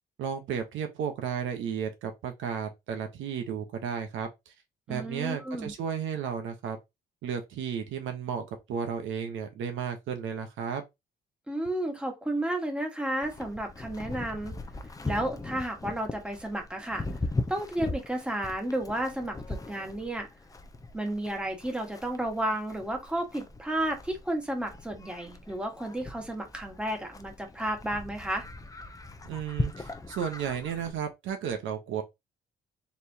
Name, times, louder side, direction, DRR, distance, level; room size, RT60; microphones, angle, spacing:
voice 1, 0.2-4.5 4.9-6.8 7.2-10.8 29.2-32.0, right 7 dB, 80° right, 1.1 m, -33 dB
voice 2, 4.9-5.7 11.5-14.6 15.0-17.1 17.5-20.3 20.9-28.4, right 1 dB, 5° right, 1.5 m, -32 dB
Livestock farm animals working animals, 13.2-30.9, left 2 dB, 15° left, 0.6 m, -39 dB
4.2 x 3.4 x 2.8 m
cardioid pair, 90°, 20 cm